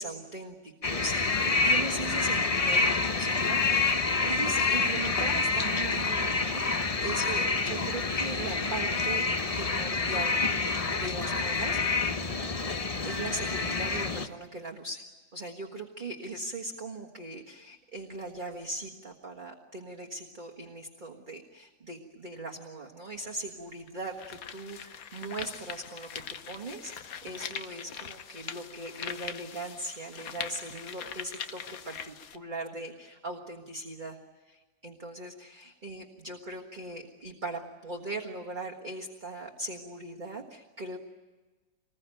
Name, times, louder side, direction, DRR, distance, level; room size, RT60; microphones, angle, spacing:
voice 1, 0.0-9.3 9.5-10.4 10.9-11.8 13.0-15.0 15.3-34.2 34.5-41.0, right 2 dB, 25° right, 0 dB, 1.6 m, -39 dB
sound 1, 0.8-14.3, left 4 dB, 35° left, 0.6 m, -28 dB
sound 2, 23.2-23.3 23.9-32.4, left 7 dB, 55° left, 1.3 m, -42 dB
25.5 x 20.5 x 9.1 m, 1.3 s
omnidirectional pair, 1.9 m